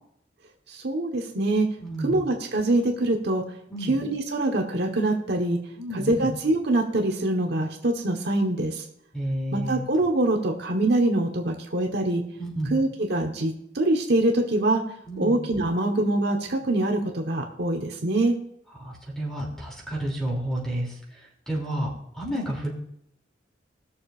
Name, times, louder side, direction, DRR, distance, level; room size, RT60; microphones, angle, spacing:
voice 1, 0.7-1.7 2.0-3.4 3.8-5.6 5.9-8.8 9.5-12.2 12.7-14.8 15.2-18.4, right 2 dB, 65° right, 2 dB, 1.3 m, -24 dB
voice 2, 1.8-2.3 3.7-4.0 5.8-6.3 9.1-9.9 12.4-12.8 15.0-15.4 18.8-22.7, right 1 dB, 5° left, -2 dB, 2.9 m, -31 dB
20.0 x 6.8 x 2.5 m, 0.72 s
head